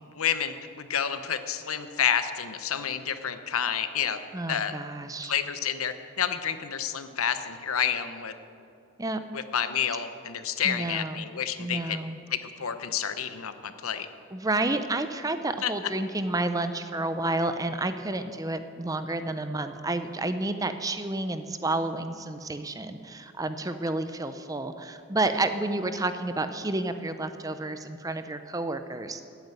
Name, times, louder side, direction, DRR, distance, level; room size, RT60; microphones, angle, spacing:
voice 1, 0.1-4.2 4.5-4.7 5.2-8.3 9.3-12.0 12.3-14.1 15.6-15.7, left 8 dB, 85° left, 10 dB, 0.9 m, -29 dB
voice 2, 4.3-5.3 9.0-9.2 10.6-11.3 11.6-12.2 14.3-29.2, right 2 dB, 15° right, 9 dB, 0.6 m, -30 dB
13.5 x 9.2 x 9.1 m, 2.5 s
head